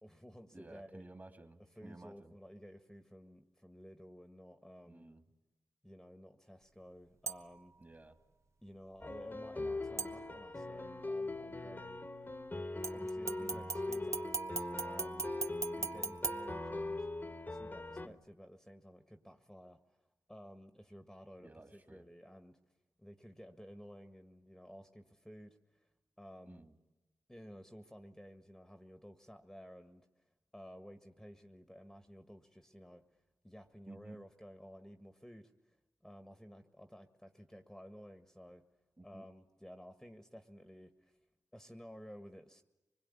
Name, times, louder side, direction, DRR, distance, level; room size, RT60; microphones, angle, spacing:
voice 1, 0.0-1.0 1.8-5.1 5.8-7.7 8.6-12.0 12.9-15.3 15.8-17.1 17.5-22.6 23.0-25.9 26.2-26.6 27.3-30.3 30.5-33.0 33.4-35.8 36.0-38.6 39.0-41.2 41.5-42.6, equal, 5° left, 7 dB, 1.7 m, -54 dB
voice 2, 0.5-2.4 4.9-5.2 7.8-8.2 13.4-13.7 18.0-18.2 21.4-22.1 26.5-26.7 33.9-34.2 39.0-39.2, right 2 dB, 30° right, 7 dB, 3.1 m, -54 dB
sound 1, 7.3-7.7 10.0-10.7 12.8-17.2 17.7-17.8, right 4 dB, 45° right, 1.1 m, -41 dB
sound 2, 9.0-18.1, left 2 dB, 30° left, 1.4 m, -41 dB
25.0 x 21.0 x 9.8 m, 1.1 s
cardioid pair, 50°, 7 cm